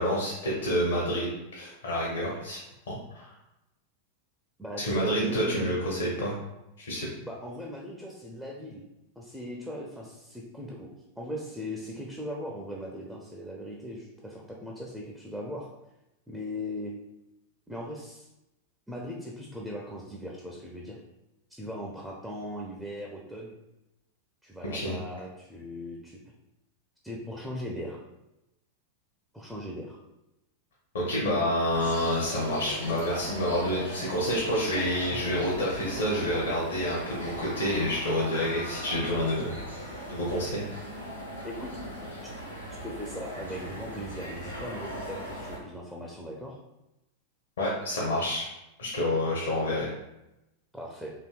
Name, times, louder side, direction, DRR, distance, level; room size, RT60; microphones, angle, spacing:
voice 1, 0.0-2.6 2.9-3.3 4.8-6.3 6.8-7.1 24.7-25.0 30.9-39.5 40.1-40.6 47.6-48.4 48.8-49.9, equal, 60° left, -5 dB, 0.7 m, -28 dB
voice 2, 4.6-5.8 7.3-8.8 9.2-10.9 11.2-15.7 16.3-16.9 17.7-18.3 18.9-21.0 21.6-23.5 24.4-26.2 27.0-28.0 29.3-30.0 41.4-41.7 42.2-42.3 42.8-46.6 50.7-51.1, left 1 dB, 5° right, -2 dB, 0.4 m, -39 dB
sound 1, 31.7-45.6, equal, 90° left, 0.9 m, -39 dB
3.4 x 2.6 x 2.3 m, 0.92 s
figure-of-eight pair, 90°, 0 cm